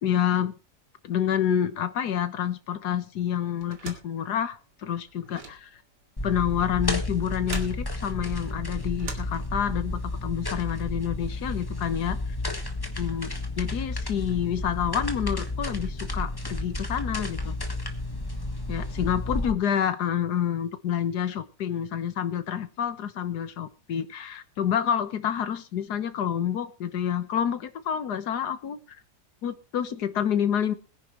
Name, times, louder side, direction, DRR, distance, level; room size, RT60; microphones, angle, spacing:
voice 1, 0.0-0.5 1.0-5.7 6.2-12.2 13.0-13.3 13.6-17.5 18.7-28.8 29.4-30.7, left 9 dB, 75° left, 11 dB, 1.7 m, -28 dB
sound 1, 3.6-9.9, right 4 dB, 90° right, 2.9 m, -44 dB
sound 2, 6.2-19.5, left 2 dB, 15° left, 1.3 m, -32 dB
21.5 x 10.0 x 3.0 m, 0.31 s
omnidirectional pair, 1.8 m